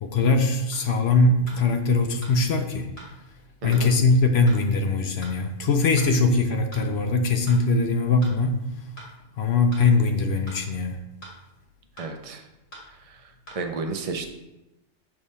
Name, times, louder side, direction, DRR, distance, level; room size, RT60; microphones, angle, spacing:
voice 1, 0.0-2.9 3.6-8.6 9.4-11.0, left 3 dB, 60° left, 5 dB, 0.8 m, -21 dB
sound 1, 0.7-0.9 1.5-1.6 2.2-2.4 3.0-3.1 3.7-3.9 4.5-4.6 5.2-5.4 6.0-6.1 6.7-6.9 7.5-7.6 8.2-8.4 9.0-9.1 9.7-9.9 10.5-10.6 11.2-11.4 12.0-12.1 12.7-12.9 13.5-13.6, right 1 dB, 90° left, 2.0 m, -43 dB
voice 2, 12.0-12.4 13.0-13.2 13.5-14.3, right 4 dB, 40° right, 5 dB, 0.5 m, -32 dB
6.7 x 3.3 x 5.4 m, 0.97 s
omnidirectional pair, 1.3 m